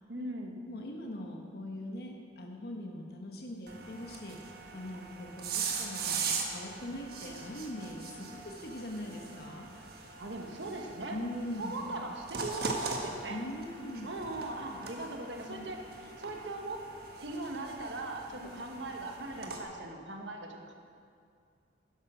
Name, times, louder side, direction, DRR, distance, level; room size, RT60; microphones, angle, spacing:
voice 1, 0.1-0.6 10.2-11.2 11.6-13.4 14.0-15.9 16.2-16.8 17.2-20.7, right 2 dB, 80° right, 3 dB, 1.4 m, -40 dB
voice 2, 0.7-10.2 11.1-11.9 13.3-14.1 15.5-15.7 18.4-18.6, left 1 dB, 55° left, 1 dB, 1.3 m, -42 dB
sound 1, 3.7-19.6, right 4 dB, 55° right, 1.4 m, -40 dB
11.0 x 10.5 x 6.1 m, 2.3 s
head